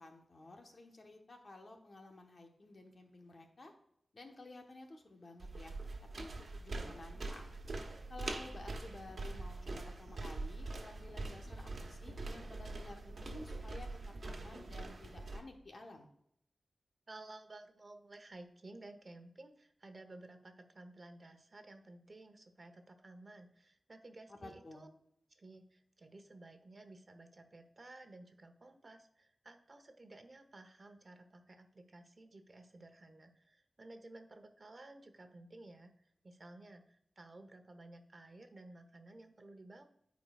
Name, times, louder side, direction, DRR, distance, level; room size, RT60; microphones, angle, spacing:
voice 1, 0.0-3.7 4.1-5.8 6.2-7.5 8.1-16.1 24.4-24.8, left 2 dB, 55° left, 3 dB, 1.2 m, -53 dB
sound 1, 5.4-15.4, right 2 dB, 70° right, 1.2 m, -44 dB
voice 2, 17.1-24.9 25.3-35.9 36.2-39.8, right 2 dB, 40° right, 7 dB, 1.0 m, -55 dB
13.5 x 4.7 x 2.4 m, 0.72 s
wide cardioid pair, 100°, 0 cm